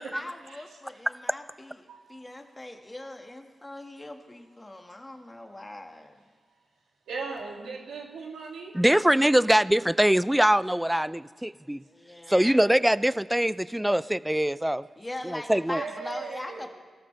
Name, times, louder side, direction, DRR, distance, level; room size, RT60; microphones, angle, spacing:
voice 1, 0.0-6.2 11.9-12.6 15.0-16.7, left 1 dB, 20° left, 3 dB, 1.9 m, -41 dB
voice 2, 7.1-8.7 15.8-16.7, right 4 dB, 90° right, -1 dB, 2.5 m, -37 dB
voice 3, 8.7-11.8 12.3-14.9 15.2-15.8, right 1 dB, 10° right, 17 dB, 0.4 m, -23 dB
21.0 x 13.5 x 3.4 m, 1.5 s
cardioid pair, 50°, 0 cm